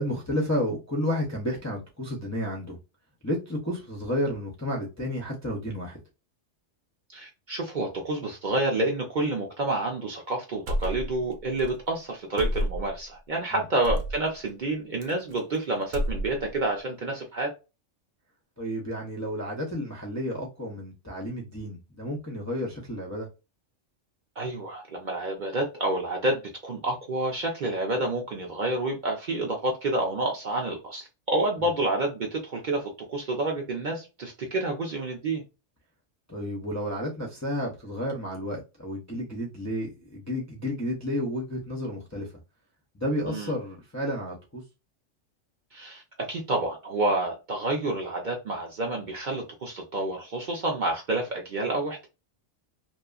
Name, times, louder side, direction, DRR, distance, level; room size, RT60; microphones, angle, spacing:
voice 1, 0.0-2.8 3.2-6.0 13.5-13.6 18.6-23.3 31.6-31.7 36.3-42.3 42.9-44.6, equal, 25° left, 0.3 m, -31 dB
voice 2, 7.1-17.5 24.4-35.4 43.3-43.5 45.7-52.1, right 2 dB, 50° right, 0.6 m, -29 dB
sound 1, 10.7-11.3 11.6-11.7 12.4-13.0 13.8-14.2 15.0-15.6 15.8-16.6, equal, 90° right, 1.0 m, -29 dB
2.8 x 2.3 x 2.3 m
omnidirectional pair, 1.3 m